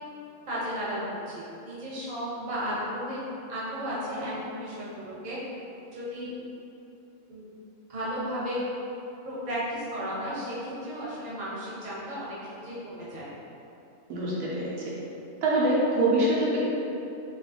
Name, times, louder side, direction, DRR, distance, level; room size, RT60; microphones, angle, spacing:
voice 1, 0.5-3.2 3.5-5.4 5.9-6.3 7.3-7.4 7.9-8.6 9.2-13.3, equal, 35° right, -8 dB, 1.0 m, -34 dB
voice 2, 14.1-14.9 15.4-16.6, right 1 dB, 80° right, -6 dB, 1.2 m, -24 dB
4.0 x 2.6 x 3.7 m, 2.9 s
omnidirectional pair, 1.4 m